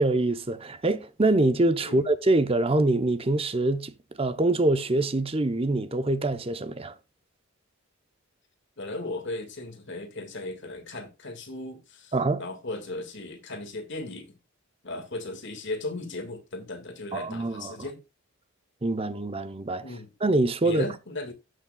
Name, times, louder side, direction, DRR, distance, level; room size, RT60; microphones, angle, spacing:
voice 1, 0.0-6.9 12.1-12.4 17.1-17.9 18.8-20.9, right 2 dB, 25° right, 0.7 m, -25 dB
voice 2, 8.8-14.4 14.8-18.0 19.8-20.1 20.6-21.3, left 2 dB, 55° left, 2.0 m, -36 dB
16.5 x 6.4 x 2.3 m
head